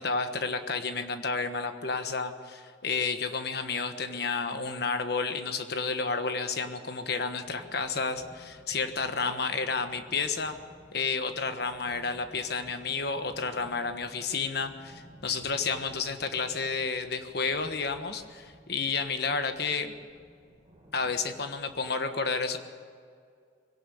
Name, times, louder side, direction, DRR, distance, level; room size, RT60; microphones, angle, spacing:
voice 1, 0.0-10.6 10.9-20.0 20.9-22.6, left 4 dB, 60° left, 8 dB, 1.4 m, -31 dB
sound 1, 7.4-21.9, equal, 20° right, 3.5 m, -55 dB
21.0 x 17.5 x 7.1 m, 2.2 s
head